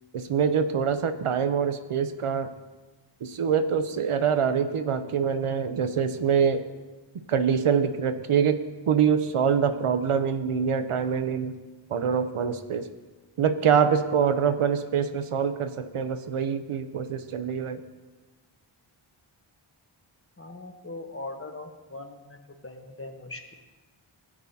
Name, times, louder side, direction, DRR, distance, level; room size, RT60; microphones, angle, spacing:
voice 1, 0.1-2.5 3.2-6.6 7.3-11.5 11.9-12.9 13.4-17.8, right 7 dB, 90° right, 10 dB, 0.7 m, -25 dB
voice 2, 20.4-23.5, left 2 dB, 25° left, 4 dB, 1.1 m, -40 dB
16.0 x 8.7 x 2.8 m, 1.2 s
wide cardioid pair, 75°, 50 cm